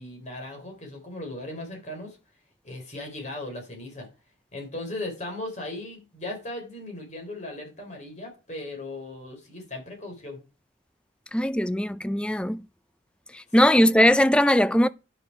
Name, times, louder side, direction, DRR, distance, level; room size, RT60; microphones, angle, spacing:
voice 1, 0.0-2.2 2.6-4.1 4.5-10.4, left 2 dB, 40° left, 4.2 m, -37 dB
voice 2, 11.3-12.6 13.3-14.9, equal, 5° left, 0.4 m, -20 dB
10.5 x 6.1 x 4.9 m
head